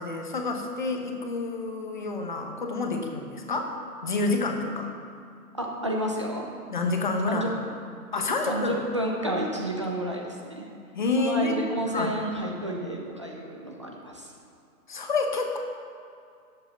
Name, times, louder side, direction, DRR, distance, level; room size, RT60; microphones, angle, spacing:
voice 1, 0.0-3.8 4.0-4.9 6.7-7.5 8.1-8.8 10.9-12.2 14.9-15.6, left 3 dB, 30° left, 3 dB, 1.1 m, -28 dB
voice 2, 5.6-6.4 7.3-7.5 8.5-10.7 11.2-14.3, right 1 dB, 20° right, -1 dB, 0.7 m, -30 dB
11.0 x 8.0 x 6.8 m, 2.4 s
hypercardioid pair, 170°, 47 cm